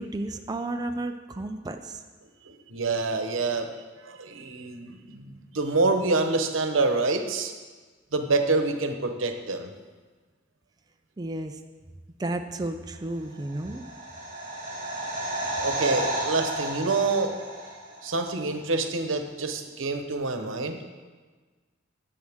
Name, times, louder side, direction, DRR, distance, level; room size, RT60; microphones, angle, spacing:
voice 1, 0.0-2.0 11.2-11.6 12.2-13.8, right 2 dB, 20° right, 5 dB, 0.4 m, -32 dB
voice 2, 2.5-3.7 4.0-7.5 8.1-9.7 15.4-17.3 18.0-20.8, right 3 dB, 90° right, 6 dB, 1.0 m, -27 dB
sound 1, 13.3-18.2 18.5-18.6, right 1 dB, 40° right, 3.3 m, -32 dB
16.0 x 7.5 x 3.6 m, 1.4 s
head